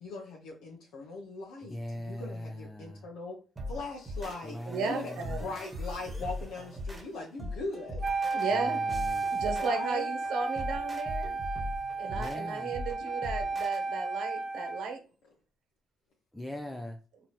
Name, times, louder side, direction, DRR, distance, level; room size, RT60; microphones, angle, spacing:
voice 1, 0.0-3.4 3.7-5.1 5.4-8.1 9.6-10.1, left 3 dB, 90° left, -2 dB, 0.7 m, -40 dB
voice 2, 1.7-3.1 4.4-5.5 8.5-9.3 12.2-12.7 16.3-17.0, left 1 dB, 5° left, 3 dB, 0.4 m, -41 dB
sound 1, 3.6-13.8, left 1 dB, 20° right, 1.4 m, -40 dB
voice 3, 4.7-5.5 8.3-8.8 9.3-11.4 12.0-15.0, right 4 dB, 85° right, 5 dB, 0.9 m, -35 dB
Wind instrument woodwind instrument, 8.0-15.0, right 3 dB, 35° right, 0.7 m, -33 dB
4.0 x 2.9 x 3.0 m, 0.37 s
cardioid pair, 90°, 0 cm